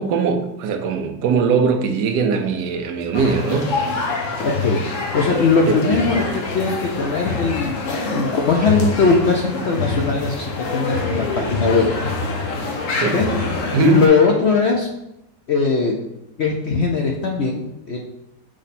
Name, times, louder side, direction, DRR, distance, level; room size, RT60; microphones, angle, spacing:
voice 1, 0.0-3.7 5.7-5.8 13.0-13.2 13.7-14.0, right 5 dB, 70° right, 5 dB, 1.2 m, -20 dB
sound 1, 3.1-14.1, left 3 dB, 55° left, 1.2 m, -25 dB
voice 2, 5.1-7.8 8.1-11.8 13.1-13.3 13.8-14.9 15.5-15.9 16.4-18.0, left 4 dB, 70° left, 0 dB, 0.6 m, -19 dB
6.2 x 4.2 x 4.2 m, 0.86 s
omnidirectional pair, 1.9 m